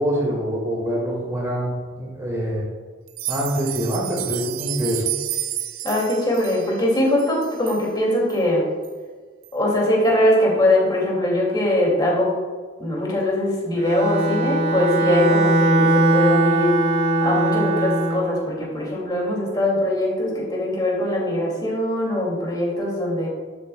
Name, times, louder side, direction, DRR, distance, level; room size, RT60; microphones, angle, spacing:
voice 1, 0.0-2.6 3.3-5.1, equal, 15° right, -4 dB, 1.8 m, -25 dB
sound 1, 3.1-7.8 8.3-8.4 8.8-8.9 9.4-9.5, right 13 dB, 85° right, 0.5 m, -31 dB
voice 2, 5.8-8.6 9.5-12.3 12.8-16.7 17.2-23.3, left 1 dB, 20° left, -4 dB, 2.4 m, -21 dB
Bowed string instrument, 13.8-18.3, right 1 dB, 55° right, 1.6 m, -19 dB
11.5 x 7.6 x 2.3 m, 1.5 s
head